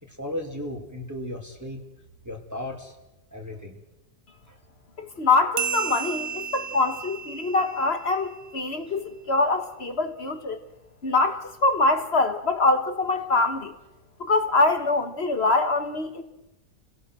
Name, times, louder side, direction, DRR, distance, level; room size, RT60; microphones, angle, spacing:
voice 1, 0.0-1.8 2.2-2.9 3.3-3.8, left 1 dB, 10° right, 2.8 m, -35 dB
voice 2, 5.0-10.6 11.0-13.7 14.2-16.2, left 3 dB, 35° left, 1.7 m, -24 dB
sound 1, 5.6-8.6, right 7 dB, 55° right, 1.2 m, -33 dB
29.5 x 18.0 x 6.3 m
omnidirectional pair, 1.9 m